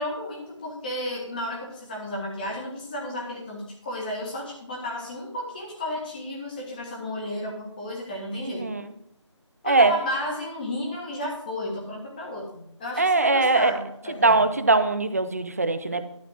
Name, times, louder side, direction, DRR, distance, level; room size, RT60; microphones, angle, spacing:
voice 1, 0.0-8.8 9.6-14.4, left 1 dB, 15° left, -1 dB, 1.8 m, -33 dB
voice 2, 8.4-8.8 9.7-9.9 13.0-13.7 14.2-16.1, right 3 dB, 30° right, 10 dB, 0.6 m, -21 dB
12.0 x 4.1 x 7.9 m, 0.74 s
figure-of-eight pair, 165°, 16 cm